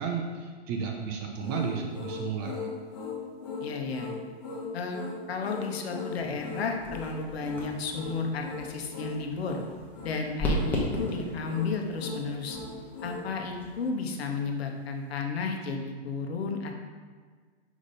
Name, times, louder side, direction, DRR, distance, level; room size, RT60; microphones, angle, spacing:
voice 1, 0.0-2.7, right 6 dB, 25° right, 2 dB, 0.5 m, -33 dB
sound 1, 1.4-13.3, left 4 dB, 40° left, 1.2 m, -39 dB
voice 2, 3.6-4.1 4.7-5.0 5.3-9.6 10.0-12.6 13.0-16.7, left 4 dB, 70° left, 3 dB, 1.1 m, -33 dB
sound 2, 6.1-13.8, equal, 5° left, 0.7 m, -37 dB
5.1 x 5.1 x 4.1 m, 1.6 s
hypercardioid pair, 150°, 32 cm